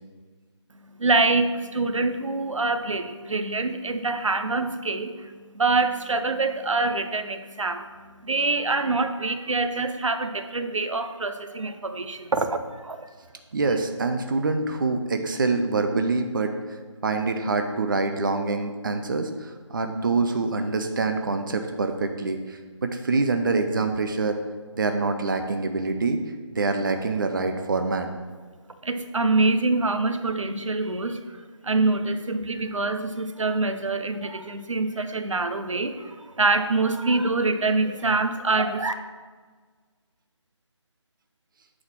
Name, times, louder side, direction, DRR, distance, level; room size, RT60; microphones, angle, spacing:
voice 1, 1.0-7.9 8.2-13.1 28.8-31.4 31.6-38.9, right 3 dB, 80° right, 8 dB, 0.8 m, -25 dB
voice 2, 13.5-24.4 24.8-26.2 26.5-28.1, right 3 dB, 40° right, 6 dB, 0.6 m, -25 dB
8.8 x 4.0 x 5.9 m, 1.5 s
figure-of-eight pair, 165°, 16 cm